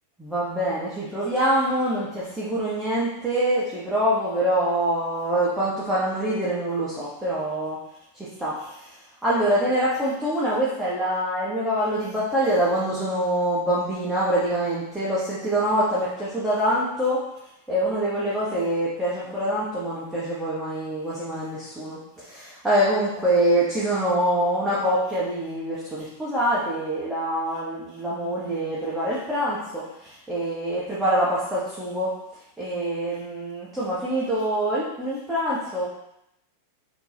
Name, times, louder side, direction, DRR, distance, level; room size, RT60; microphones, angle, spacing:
voice 1, 0.2-7.8 8.4-8.5 9.2-17.2 17.7-29.8 30.3-32.1 32.6-35.9, right 1 dB, 5° right, -10 dB, 1.2 m, -25 dB
5.9 x 3.0 x 2.8 m, 0.81 s
figure-of-eight pair, 90°, 0 cm